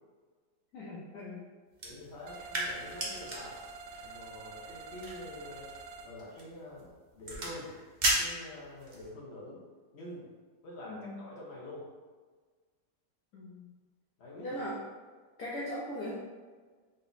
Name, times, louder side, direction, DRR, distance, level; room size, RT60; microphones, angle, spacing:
voice 1, 0.7-1.5 10.8-11.1 13.3-13.7 14.4-14.8 15.4-16.2, left 1 dB, 65° left, -6 dB, 1.1 m, -39 dB
sound 1, 1.7-9.1, right 1 dB, 40° right, 0.6 m, -37 dB
voice 2, 1.8-3.6 4.0-5.6 6.0-6.9 7.1-7.7 8.2-9.6 9.9-10.2 10.6-11.8 14.2-14.6, left 1 dB, 40° left, -5 dB, 1.3 m, -46 dB
sound 2, 2.3-6.1, right 4 dB, 75° right, 1.1 m, -47 dB
4.0 x 2.9 x 3.9 m, 1.4 s
omnidirectional pair, 1.9 m